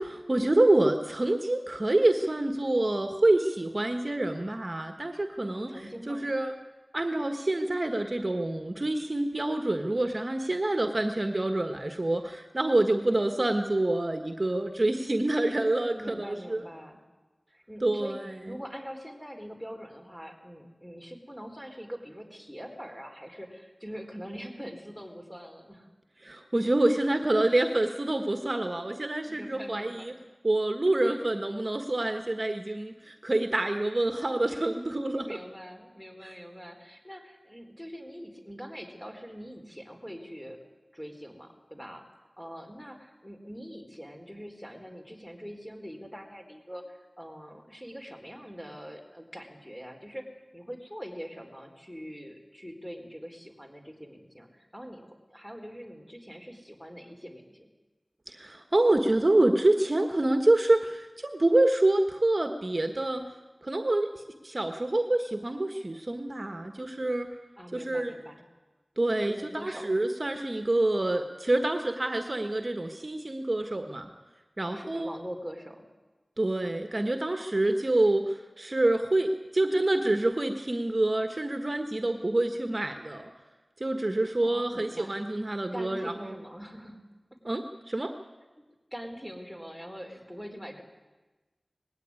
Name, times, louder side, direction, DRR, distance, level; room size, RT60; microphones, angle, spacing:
voice 1, 0.0-5.7 6.1-6.5 6.9-16.6 17.8-18.6 26.2-30.1 30.4-35.3 58.3-63.3 63.6-67.3 67.7-68.1 69.0-74.1 74.6-75.1 76.4-83.3 83.8-86.4 87.4-88.1, right 2 dB, 45° right, 6 dB, 1.4 m, -27 dB
voice 2, 5.5-6.3 15.9-17.0 17.5-18.2 18.5-25.9 29.3-30.1 31.0-31.2 35.1-40.6 40.9-50.2 50.5-57.7 67.6-68.4 69.2-69.9 74.6-75.9 84.1-85.2 85.7-87.4 88.9-90.8, equal, 5° left, 4 dB, 4.1 m, -43 dB
19.5 x 16.0 x 9.7 m, 1.2 s
wide cardioid pair, 55°, 0 cm